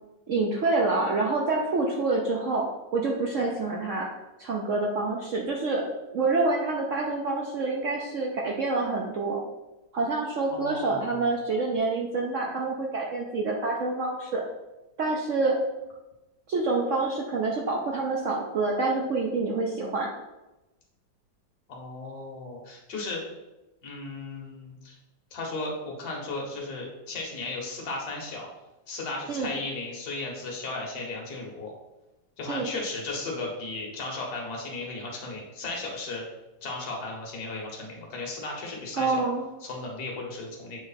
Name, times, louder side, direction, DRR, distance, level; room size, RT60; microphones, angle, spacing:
voice 1, 0.3-2.7 2.9-4.1 4.4-5.8 6.1-9.4 9.9-14.4 15.0-15.6 16.5-20.1 29.3-29.5 32.5-32.7 39.0-39.5, right 3 dB, 60° right, -1 dB, 0.8 m, -27 dB
voice 2, 10.5-11.3 21.7-23.2 23.8-25.0 25.3-28.5 28.9-31.7 32.4-36.2 36.6-39.2 39.6-40.8, left 3 dB, 60° left, -1 dB, 1.8 m, -35 dB
7.9 x 3.2 x 4.1 m, 1.0 s
omnidirectional pair, 1.9 m